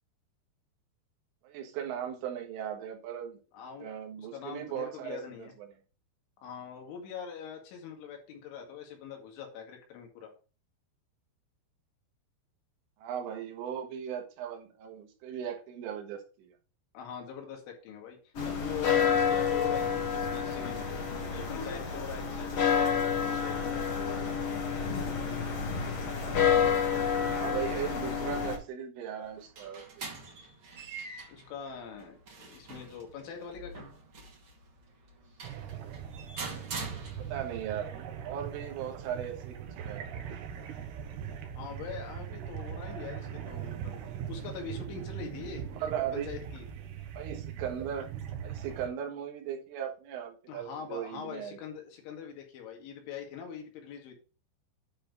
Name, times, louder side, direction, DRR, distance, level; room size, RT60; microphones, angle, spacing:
voice 1, 1.4-3.4 3.8-5.7 13.0-16.5 27.3-30.1 37.2-37.9 38.2-40.0 45.8-46.3 47.2-48.1 48.4-51.6, right 9 dB, 90° right, 3 dB, 4.0 m, -37 dB
voice 2, 3.5-3.9 4.2-5.5 6.4-10.3 16.9-18.2 18.4-20.9 21.3-23.8 31.3-33.9 41.6-44.0 44.3-45.7 46.1-46.7 50.5-54.2, left 7 dB, 75° left, 2 dB, 4.4 m, -43 dB
sound 1, 18.3-28.6, left 7 dB, 55° left, 1.8 m, -29 dB
sound 2, 29.2-37.6, right 3 dB, 45° right, 1.7 m, -44 dB
sound 3, 35.4-48.9, right 9 dB, 70° right, 2.8 m, -41 dB
10.5 x 4.4 x 5.2 m, 0.36 s
omnidirectional pair, 5.6 m